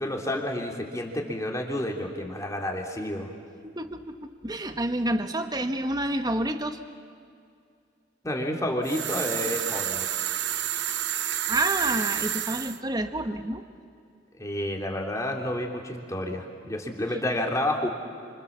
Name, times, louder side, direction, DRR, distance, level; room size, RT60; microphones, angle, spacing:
voice 1, 0.0-3.3 8.2-10.1 14.4-17.9, left 1 dB, 20° left, 1 dB, 3.1 m, -30 dB
voice 2, 3.6-6.8 11.5-13.6, right 1 dB, 20° right, 7 dB, 1.4 m, -28 dB
sound 1, 8.8-12.8, right 11 dB, 75° right, 1.0 m, -30 dB
30.0 x 25.5 x 7.4 m, 2.3 s
head